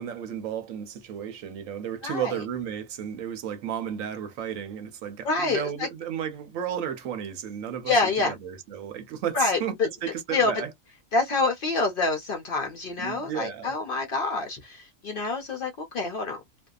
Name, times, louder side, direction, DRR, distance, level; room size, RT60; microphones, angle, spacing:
voice 1, 0.0-10.7 13.0-13.7, right 9 dB, 85° right, 1.0 m, -33 dB
voice 2, 2.0-2.4 5.2-5.9 7.9-8.3 9.3-9.9 10.3-10.5 11.1-16.4, left 3 dB, 60° left, 0.6 m, -27 dB
2.6 x 2.2 x 2.3 m
omnidirectional pair, 1.4 m